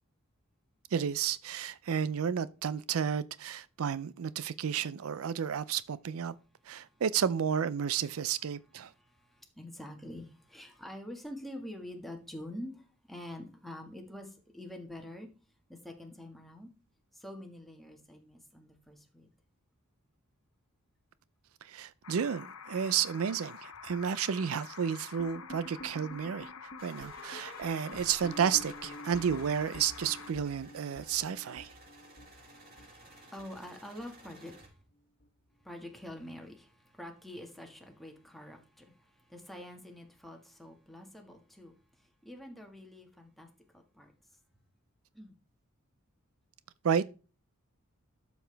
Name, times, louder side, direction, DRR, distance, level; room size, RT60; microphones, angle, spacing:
voice 1, 0.9-6.3 6.7-8.9 21.6-26.5 26.8-31.7 46.8-47.1, right 7 dB, 80° right, 0.4 m, -32 dB
voice 2, 8.8-15.3 15.7-16.7 17.1-19.3 32.2-34.8 35.6-44.1 45.1-45.4, left 1 dB, ahead, 1.6 m, -46 dB
sound 1, 22.0-30.3, left 6 dB, 85° left, 0.9 m, -48 dB
sound 2, 25.2-34.3 34.6-34.9 35.2-35.3 35.8-35.9 36.4-36.5, left 1 dB, 45° left, 1.4 m, -50 dB
sound 3, 26.8-34.7, right 2 dB, 50° right, 4.1 m, -56 dB
12.0 x 7.0 x 3.4 m
head